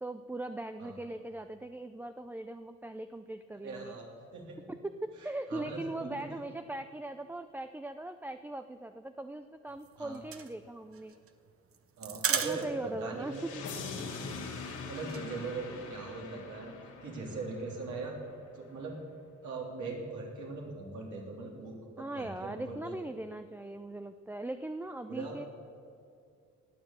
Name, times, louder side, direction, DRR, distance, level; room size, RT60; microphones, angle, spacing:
voice 1, 0.0-3.9 4.7-11.2 12.3-13.6 22.0-25.5, right 2 dB, 5° right, 8 dB, 0.4 m, -40 dB
voice 2, 3.6-4.6 5.5-6.4 10.0-10.2 12.0-13.4 14.9-16.7 17.0-18.2 18.5-19.0 19.4-22.9 25.1-25.5, right 3 dB, 75° right, -1 dB, 3.4 m, -40 dB
sound 1, 9.7-13.0 13.3-13.4 13.7-13.8 14.1-15.2, right 7 dB, 45° right, 1.1 m, -35 dB
sound 2, 13.2-18.2, left 4 dB, 80° left, 2.4 m, -43 dB
19.0 x 7.5 x 7.2 m, 2.5 s
cardioid pair, 90°, 30 cm